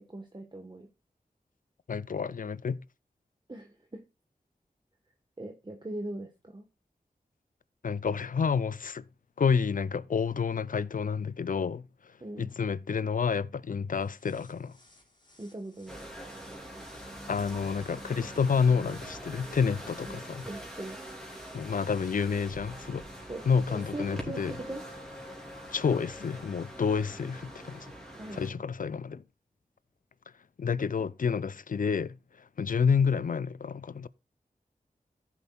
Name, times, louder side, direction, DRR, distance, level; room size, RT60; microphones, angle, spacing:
voice 1, 0.1-0.9 3.5-4.0 5.4-6.6 12.2-12.5 15.4-16.0 20.0-21.0 23.3-23.4 23.7-24.4 24.7-24.8 28.1-28.6, right 1 dB, 30° right, 1.2 m, -40 dB
voice 2, 1.9-2.8 7.8-9.0 9.4-11.9 12.4-14.7 17.3-20.5 21.5-23.0 23.5-24.6 25.7-27.9 28.3-29.2 30.6-32.2 32.6-34.1, left 6 dB, 60° left, 0.5 m, -29 dB
sound 1, 14.0-22.1, left 1 dB, 30° left, 4.1 m, -62 dB
sound 2, 15.9-28.5, right 1 dB, ahead, 3.2 m, -44 dB
15.0 x 7.0 x 2.3 m
cardioid pair, 45°, 16 cm